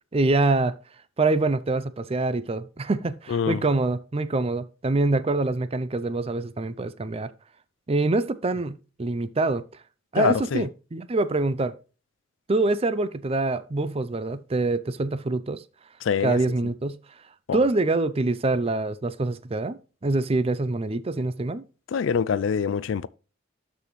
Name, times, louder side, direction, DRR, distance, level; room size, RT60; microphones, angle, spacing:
voice 1, 0.1-0.8 1.2-7.3 7.9-9.6 10.1-11.7 12.5-15.6 16.2-17.0 17.5-21.6, right 2 dB, 30° right, 0.5 m, -25 dB
voice 2, 3.3-3.6 10.2-10.6 16.0-16.4 17.5-17.6 21.9-23.1, left 6 dB, 65° left, 0.4 m, -25 dB
12.5 x 4.2 x 3.1 m
head